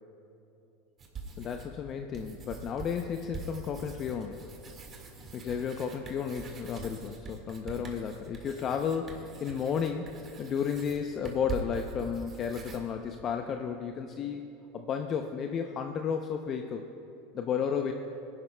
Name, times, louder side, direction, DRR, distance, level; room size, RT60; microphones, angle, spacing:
sound 1, 1.0-1.8 2.1-12.8, right 4 dB, 35° right, 1.7 m, -44 dB
voice 1, 1.4-4.5 5.3-14.4 14.7-16.9 17.3-17.9, left 7 dB, 40° left, 5 dB, 0.6 m, -33 dB
23.0 x 11.0 x 2.2 m, 2.9 s
supercardioid pair, 110°, 0 cm